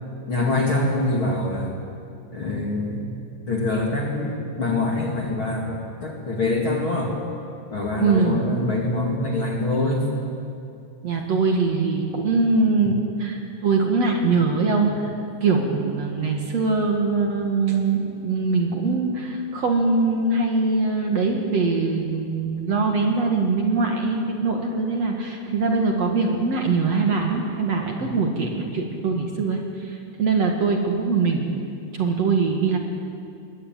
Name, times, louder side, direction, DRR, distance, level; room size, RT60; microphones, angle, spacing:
voice 1, 0.3-1.8 2.3-3.1 3.5-7.1 7.7-10.1 28.0-28.1, left 2 dB, 35° left, -1 dB, 2.4 m, -24 dB
voice 2, 8.0-8.4 11.0-15.1 15.4-31.5 31.9-32.8, right 4 dB, 55° right, 2 dB, 2.0 m, -22 dB
22.0 x 19.0 x 9.1 m, 2.5 s
omnidirectional pair, 5.5 m